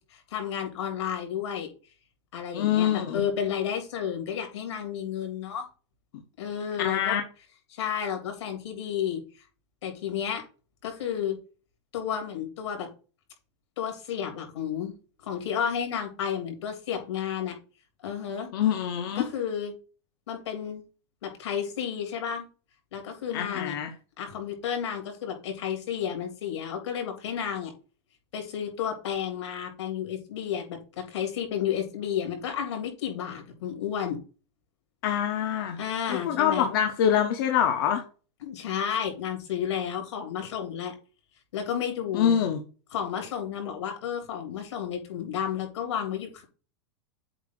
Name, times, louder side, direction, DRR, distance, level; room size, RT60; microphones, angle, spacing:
voice 1, 0.1-1.7 2.3-5.7 6.4-7.2 7.7-9.2 9.8-10.4 10.8-11.4 11.9-12.9 13.8-14.9 15.2-17.5 18.0-18.5 19.1-19.7 20.3-20.8 21.2-22.4 22.9-23.8 24.2-27.7 28.3-34.2 35.8-36.7 38.4-40.9 41.5-42.4 42.9-46.4, left 8 dB, 80° left, 3 dB, 3.4 m, -32 dB
voice 2, 2.5-3.2 6.8-7.2 18.5-19.3 23.3-23.9 35.0-35.8 36.2-38.0 42.1-42.6, left 9 dB, 50° left, 4 dB, 1.0 m, -25 dB
8.0 x 2.8 x 6.0 m, 0.34 s
supercardioid pair, 170°, 14 cm